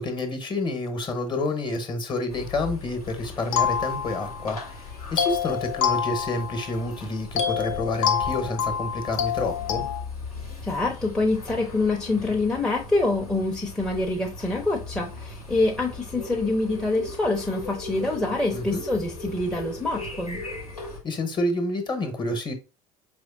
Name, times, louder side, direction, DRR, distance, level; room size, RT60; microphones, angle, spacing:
voice 1, 0.0-9.8 18.5-18.8 21.0-22.5, left 2 dB, 25° left, 1.0 m, -29 dB
sound 1, 2.3-21.0, left 2 dB, 85° left, 1.0 m, -38 dB
sound 2, 3.5-4.6 5.2-6.9 7.4-10.0, left 8 dB, 55° left, 0.7 m, -27 dB
voice 2, 10.6-20.4, left 2 dB, 5° left, 0.6 m, -26 dB
5.0 x 3.2 x 2.4 m
figure-of-eight pair, 70°, 19 cm